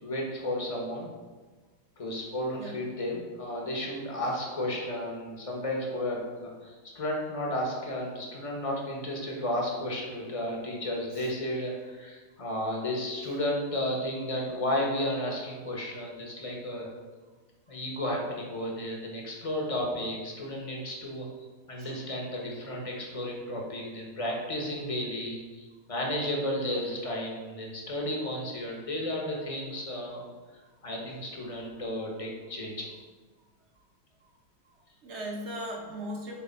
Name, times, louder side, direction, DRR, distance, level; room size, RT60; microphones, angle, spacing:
voice 1, 0.0-1.1 2.0-16.9 17.7-21.3 21.7-30.2 30.8-32.9, left 1 dB, 25° left, -1 dB, 0.8 m, -33 dB
voice 2, 34.7-36.4, equal, 45° right, 0 dB, 1.0 m, -39 dB
8.4 x 3.3 x 4.6 m, 1.4 s
omnidirectional pair, 2.2 m